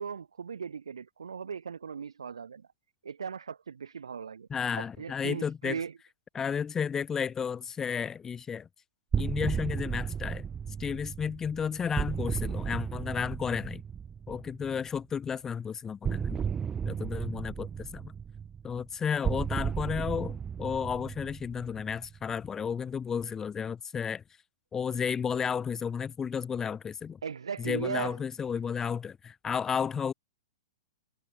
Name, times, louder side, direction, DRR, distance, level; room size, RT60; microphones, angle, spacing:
voice 1, 0.0-2.7 3.0-5.9 27.2-28.2, right 6 dB, 85° right, 2.3 m, -38 dB
voice 2, 4.5-5.8 6.3-8.7 9.2-10.5 10.8-13.8 14.3-16.4 16.8-18.1 18.6-24.2 24.7-27.2 27.6-30.1, left 7 dB, 15° left, 1.3 m, -32 dB
sound 1, 9.1-14.9 16.0-22.3, right 7 dB, 15° right, 0.5 m, -34 dB
hypercardioid pair, 125°, 3 cm